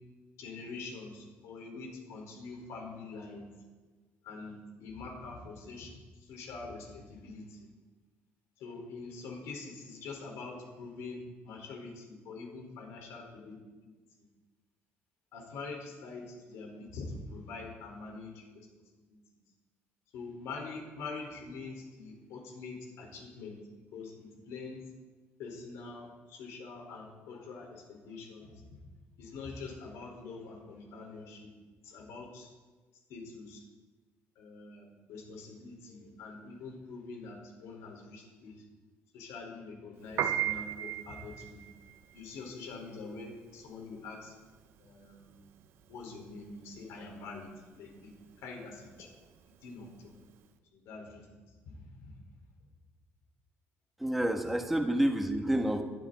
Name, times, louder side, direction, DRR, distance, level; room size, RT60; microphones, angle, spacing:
voice 1, 0.4-3.5 4.2-5.9 6.2-7.7 8.6-14.0 15.3-18.7 18.9-19.2 20.1-23.6 23.9-24.8 25.4-28.8 29.2-31.5 31.8-32.5 33.1-33.6 34.3-38.6 39.1-41.6 42.1-44.3 44.8-45.5 45.9-47.5 47.7-48.1 48.4-49.1 49.6-50.2 50.7-51.3 51.6-52.1, left 3 dB, 85° left, 1 dB, 4.7 m, -45 dB
Piano, 40.0-50.4, right 11 dB, 65° right, 1.0 m, -38 dB
voice 2, 54.0-55.8, right 1 dB, 5° right, 3 dB, 1.3 m, -28 dB
21.5 x 13.0 x 4.2 m, 1.3 s
cardioid pair, 180°, 5 cm